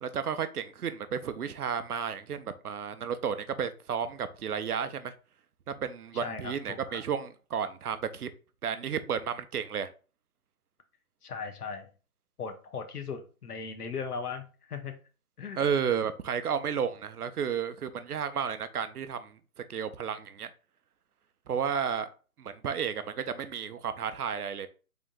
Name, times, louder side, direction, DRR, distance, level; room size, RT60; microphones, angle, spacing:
voice 1, 0.0-5.1 5.7-8.3 8.6-9.9 15.6-19.4 19.7-20.5 21.5-22.1 22.4-24.7, right 7 dB, 80° right, 0.7 m, -32 dB
voice 2, 6.1-7.0 11.2-11.9 12.4-14.9 15.4-15.6, left 5 dB, 85° left, 1.0 m, -38 dB
3.8 x 3.6 x 2.6 m
hypercardioid pair, 170°, 45 cm